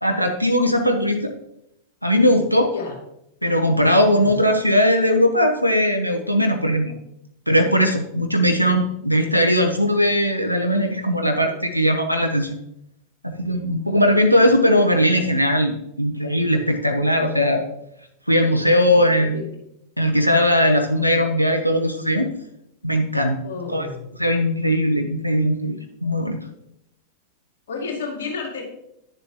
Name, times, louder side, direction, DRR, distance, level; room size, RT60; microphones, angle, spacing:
voice 1, 0.0-1.3 2.0-2.7 3.4-6.9 7.5-12.6 13.2-17.6 18.3-19.4 20.0-22.3 22.8-23.4 23.7-23.9 24.2-26.4, equal, 90° left, 4 dB, 0.7 m, -19 dB
voice 2, 19.1-19.5 23.4-24.1 27.7-28.6, left 5 dB, 60° left, -2 dB, 2.4 m, -31 dB
10.0 x 6.9 x 3.0 m, 0.80 s
figure-of-eight pair, 90°, 0 cm